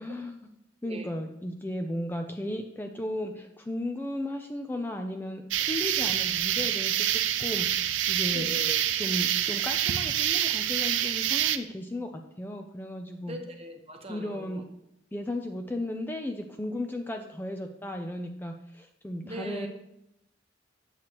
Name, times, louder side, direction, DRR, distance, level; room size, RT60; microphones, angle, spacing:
voice 1, 0.0-7.7 8.1-8.5 9.0-13.4 14.1-14.6 15.1-19.7, left 1 dB, 10° left, 4 dB, 0.4 m, -35 dB
sound 1, 5.5-11.6, right 11 dB, 75° right, 0.4 m, -27 dB
voice 2, 8.3-8.8 13.3-14.6 19.2-19.7, equal, 30° right, 4 dB, 1.0 m, -39 dB
8.0 x 7.4 x 2.9 m, 0.82 s
head